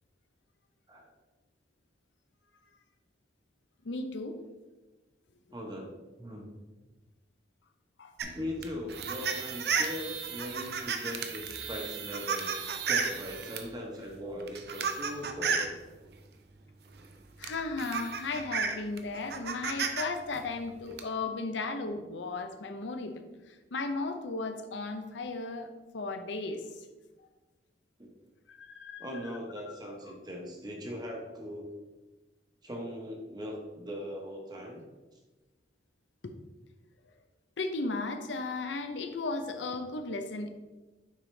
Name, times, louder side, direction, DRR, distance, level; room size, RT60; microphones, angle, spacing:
voice 1, 3.8-4.4 8.0-8.1 17.4-26.7 28.5-29.1 36.2-36.3 37.6-40.5, left 3 dB, 85° left, 7 dB, 0.6 m, -35 dB
voice 2, 5.5-5.9 6.2-6.5 8.2-12.5 12.8-15.7 21.3-21.4 28.0-28.1 29.0-31.7 32.6-34.8, equal, 25° right, 0 dB, 1.1 m, -40 dB
sound 1, 8.2-13.7 14.4-15.8 17.0-17.1 17.4-20.0 20.3-21.0, right 6 dB, 60° right, 0.6 m, -33 dB
6.5 x 4.8 x 3.3 m, 1.2 s
head